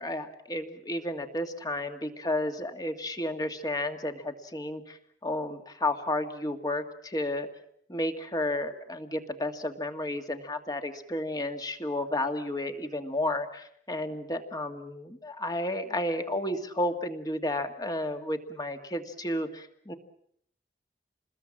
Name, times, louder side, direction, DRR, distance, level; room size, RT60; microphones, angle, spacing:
voice 1, 0.0-7.5 7.9-20.0, left 1 dB, 20° left, 6 dB, 1.9 m, -32 dB
28.0 x 20.5 x 7.4 m, 0.68 s
head